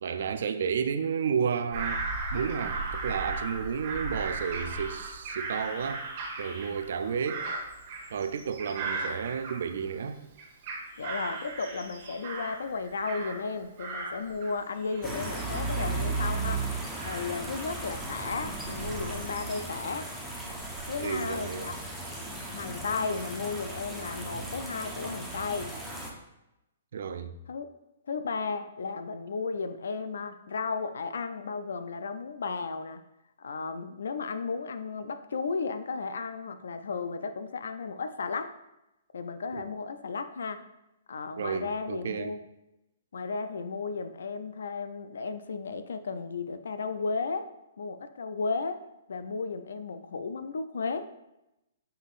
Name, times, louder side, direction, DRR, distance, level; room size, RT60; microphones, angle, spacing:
voice 1, 0.0-2.0 2.3-6.1 6.4-7.5 8.1-10.2 21.0-21.7 26.9-27.3 39.5-39.7 41.4-42.4, right 6 dB, 65° right, 0.4 m, -32 dB
Bird vocalization bird call bird song / Crow, 1.7-10.0 10.4-13.5 13.8-19.8 20.3-20.9, right 3 dB, 40° right, 1.2 m, -37 dB
voice 2, 11.0-16.7 17.1-20.1 20.9-21.8 22.5-25.7 27.5-27.7 28.1-33.0 33.4-38.5 39.1-40.6 41.1-42.4 43.1-47.5 47.8-51.1, left 4 dB, 85° left, 0.3 m, -34 dB
sound 1, 15.0-26.1, right 2 dB, ahead, 0.6 m, -36 dB
5.4 x 3.6 x 2.5 m
hypercardioid pair, 155°, 0 cm